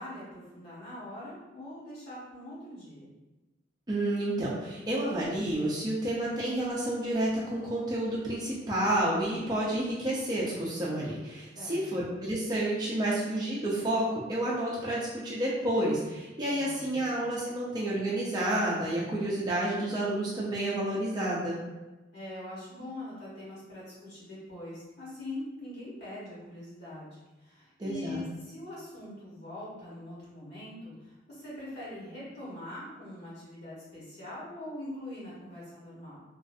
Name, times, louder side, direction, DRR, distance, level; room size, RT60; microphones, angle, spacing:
voice 1, 0.0-3.1 11.5-11.9 16.5-16.9 22.1-36.2, left 1 dB, 60° left, -8 dB, 1.2 m, -43 dB
voice 2, 3.9-21.6 27.8-28.2, right 1 dB, 20° right, -6 dB, 0.5 m, -30 dB
3.0 x 2.5 x 2.5 m, 1.1 s
head